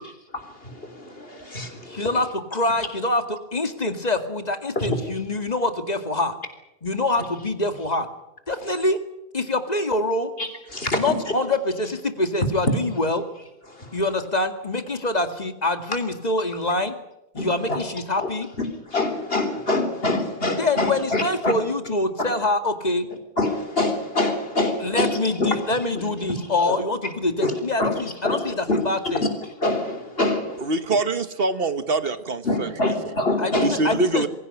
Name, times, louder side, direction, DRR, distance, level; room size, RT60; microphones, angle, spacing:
voice 1, 0.3-2.1 4.8-5.0 8.5-8.6 10.4-11.5 13.7-14.0 17.4-17.8 18.2-18.3 18.6-21.5 22.2-22.4 23.4-26.0 26.3-26.8 27.4-30.7 32.4-34.0, left 2 dB, 70° left, 7 dB, 3.9 m, -26 dB
voice 2, 1.9-6.3 6.8-8.1 8.5-9.0 9.3-10.3 10.9-13.3 13.9-16.9 17.3-18.5 20.6-23.1 24.8-29.2 33.4-34.3, left 2 dB, 40° left, 8 dB, 2.3 m, -25 dB
voice 3, 30.6-32.9 33.6-34.3, right 3 dB, 65° right, 12 dB, 1.5 m, -24 dB
23.5 x 16.5 x 9.9 m, 0.86 s
omnidirectional pair, 1.0 m